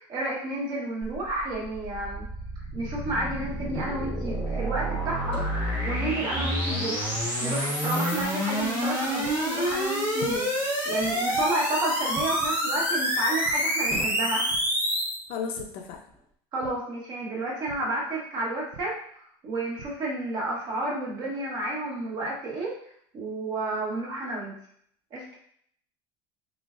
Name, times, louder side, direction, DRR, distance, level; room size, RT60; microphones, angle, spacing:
voice 1, 0.0-2.3 2.7-7.1 7.4-10.5 10.8-14.4 16.5-19.0 19.4-22.7 23.1-24.5 25.1-25.4, right 2 dB, 35° right, -3 dB, 1.1 m, -31 dB
sound 1, 1.0-15.2, equal, 10° right, 1.2 m, -28 dB
sound 2, 3.7-4.2 5.1-5.7 6.1-7.2 7.9-8.0 8.5-10.5 10.9-11.4 12.2-12.4 13.8-14.4 15.2-15.3 15.8-16.3, left 1 dB, 15° left, 1.0 m, -43 dB
sound 3, 7.1-7.2 8.2-8.3 9.2-9.3 10.3-10.4 11.3-11.4 11.9-12.1 12.4-12.5 13.4-13.5 14.5-14.6 15.6-15.7 16.6-16.7 17.7-17.8 18.7-18.8 19.5-19.9, right 6 dB, 75° right, 0.6 m, -44 dB
voice 2, 15.3-16.0, left 6 dB, 50° left, 4 dB, 0.5 m, -34 dB
3.8 x 3.2 x 2.4 m, 0.64 s
cardioid pair, 165°, 12 cm